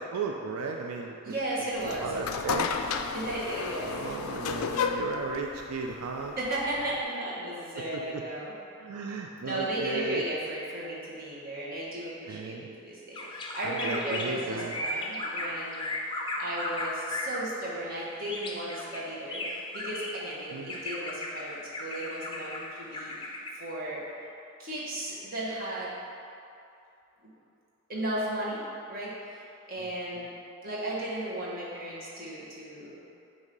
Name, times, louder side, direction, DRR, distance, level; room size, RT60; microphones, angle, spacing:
voice 1, 0.0-1.3 2.0-2.7 3.8-6.4 7.9-8.2 8.8-10.3 12.3-12.8 13.6-14.7 20.5-20.8 29.8-29.9 30.2-30.3, right 4 dB, 85° right, 1 dB, 0.4 m, -35 dB
voice 2, 1.2-2.0 3.1-3.9 6.4-8.5 9.4-12.6 12.8-15.9 16.4-23.1 23.5-24.0 24.6-25.9 27.2-27.3 27.9-28.6 28.9-29.4 29.7-30.3 30.6-33.2, right 1 dB, 40° right, -7 dB, 1.4 m, -35 dB
sound 1, 1.7-7.0, left 5 dB, 75° left, 0.4 m, -33 dB
sound 2, 13.1-17.5 18.2-20.3 20.7-23.5, left 2 dB, 20° left, 0.5 m, -35 dB
8.0 x 2.8 x 5.2 m, 2.6 s
head